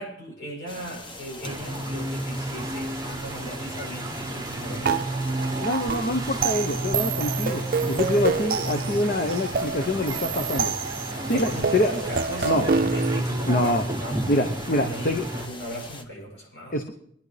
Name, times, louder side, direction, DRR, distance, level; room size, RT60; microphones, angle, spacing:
voice 1, 0.0-5.1 11.1-16.8, equal, 65° left, -2 dB, 7.1 m, -37 dB
sound 1, 0.7-16.0, left 2 dB, 25° left, 1.1 m, -42 dB
sound 2, 1.4-15.5, right 1 dB, 20° right, 0.8 m, -32 dB
sound 3, 4.8-13.2, right 5 dB, 50° right, 0.5 m, -28 dB
voice 2, 5.6-10.7 11.3-11.9 12.4-12.6 13.5-13.8 14.3-15.2 16.7-16.9, left 1 dB, 50° left, 5 dB, 0.9 m, -25 dB
23.0 x 11.0 x 3.3 m, 0.70 s
head